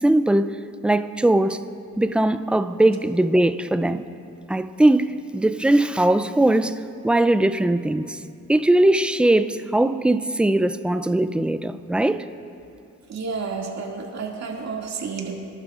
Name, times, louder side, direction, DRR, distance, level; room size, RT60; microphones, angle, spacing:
voice 1, 0.0-0.5 0.8-1.6 2.0-4.0 4.5-8.2 8.5-12.2, right 1 dB, 5° right, 0.4 m, -20 dB
voice 2, 13.1-15.4, right 5 dB, 60° right, 2.3 m, -30 dB
26.0 x 11.5 x 2.5 m
cardioid pair, 90°, 30 cm